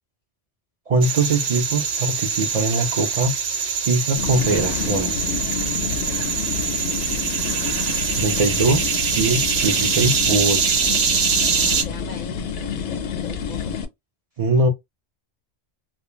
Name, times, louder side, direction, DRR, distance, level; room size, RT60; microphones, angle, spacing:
voice 1, 0.9-3.3 3.9-5.4 8.2-10.8 14.4-14.7, right 3 dB, 55° right, 0.4 m, -22 dB
sound 1, 1.0-11.8, right 6 dB, 75° right, 0.8 m, -23 dB
sound 2, 4.2-13.9, left 7 dB, 85° left, 0.9 m, -29 dB
voice 2, 11.5-13.8, left 5 dB, 55° left, 0.5 m, -41 dB
2.2 x 2.1 x 3.0 m
omnidirectional pair, 1.1 m